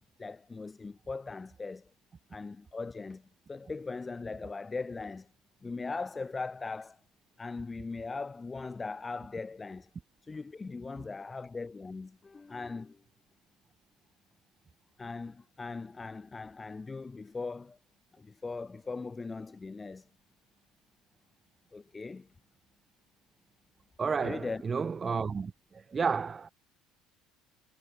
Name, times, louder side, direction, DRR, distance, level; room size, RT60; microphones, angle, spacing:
voice 1, 0.2-1.9 2.3-5.3 5.6-7.0 7.4-9.9 10.2-13.0 15.0-17.8 18.1-20.1 21.7-22.3 24.2-24.6, left 4 dB, 20° left, 0.6 m, -39 dB
voice 2, 24.0-26.5, right 5 dB, 30° right, 0.6 m, -32 dB
supercardioid pair, 90°, 0 cm